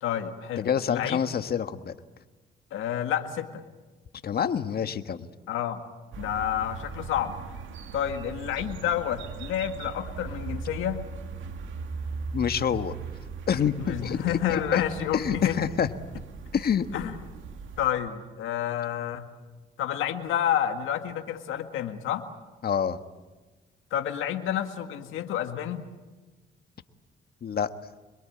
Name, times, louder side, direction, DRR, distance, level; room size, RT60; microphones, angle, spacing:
voice 1, 0.0-1.2 2.7-3.6 5.5-5.8 6.2-7.4 7.9-11.1 13.8-15.6 16.9-17.1 17.8-19.3 19.8-22.3 23.9-25.9, left 10 dB, 85° left, 6 dB, 1.8 m, -29 dB
voice 2, 0.6-1.9 4.2-5.3 12.3-12.9 13.5-14.8 15.1-15.9 16.5-16.8 22.6-23.0 27.4-27.7, left 8 dB, 50° left, 10 dB, 1.5 m, -27 dB
sound 1, 6.1-17.9, right 5 dB, 75° right, 2.4 m, -39 dB
26.0 x 22.5 x 8.7 m, 1.2 s
cardioid pair, 90°, 20 cm